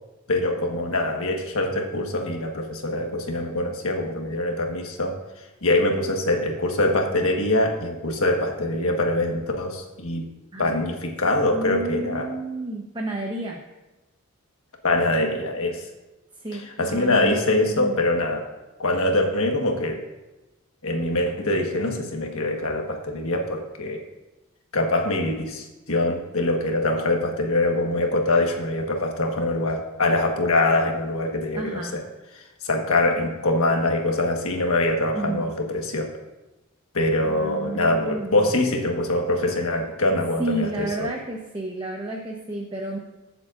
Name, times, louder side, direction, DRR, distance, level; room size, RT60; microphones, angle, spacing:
voice 1, 0.3-5.2 5.6-10.3 10.6-12.3 14.8-15.8 16.5-18.5 18.8-20.0 20.8-24.0 24.7-32.0 32.6-36.1 36.9-41.1, left 2 dB, 70° left, 2 dB, 1.4 m, -24 dB
voice 2, 11.5-13.6 16.4-18.0 31.5-32.0 35.1-35.5 37.3-38.5 40.4-43.0, right 1 dB, 20° right, 0 dB, 0.9 m, -31 dB
21.5 x 7.5 x 2.6 m, 1.1 s
head